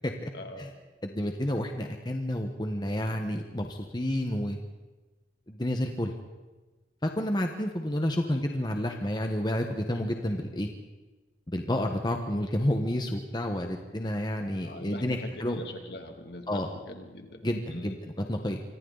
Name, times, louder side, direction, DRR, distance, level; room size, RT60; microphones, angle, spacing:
voice 1, 0.3-0.7 8.2-8.4 14.6-18.0, left 1 dB, 65° left, 4 dB, 2.5 m, -42 dB
voice 2, 1.0-4.6 5.5-6.1 7.0-10.7 11.5-15.6 16.5-16.7 17.4-18.6, left 1 dB, 25° left, 4 dB, 1.3 m, -30 dB
27.0 x 24.5 x 4.1 m, 1.2 s
head